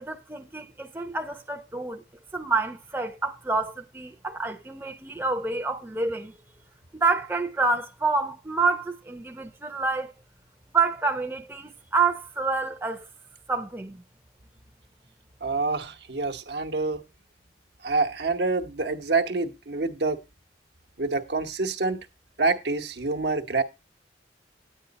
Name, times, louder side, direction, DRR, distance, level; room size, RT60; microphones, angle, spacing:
voice 1, 0.0-2.0 2.3-6.3 6.9-10.1 10.7-13.1 13.5-14.0, right 4 dB, 10° right, 0.7 m, -28 dB
voice 2, 15.4-17.0 17.8-20.2 21.0-22.1 22.4-23.6, right 3 dB, 70° right, 1.0 m, -27 dB
9.5 x 9.2 x 4.0 m
head